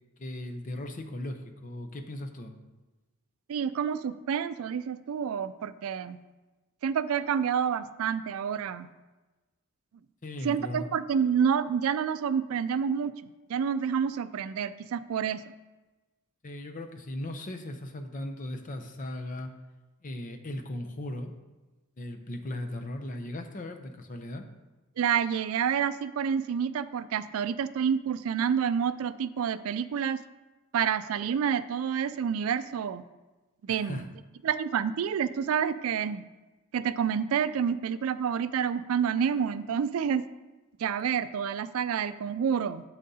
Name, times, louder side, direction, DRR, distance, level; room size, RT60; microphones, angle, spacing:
voice 1, 0.2-2.5 10.2-10.9 16.4-19.5 20.0-21.3 22.0-24.5 33.7-34.1, left 1 dB, 35° left, 6 dB, 0.6 m, -37 dB
voice 2, 3.5-6.2 6.8-8.9 10.4-13.1 13.5-15.4 25.0-30.2 30.7-33.0 33.6-34.1 34.4-36.2 36.7-40.3 40.8-42.8, right 7 dB, 70° right, 14 dB, 0.3 m, -28 dB
8.9 x 7.4 x 2.8 m, 1.2 s
head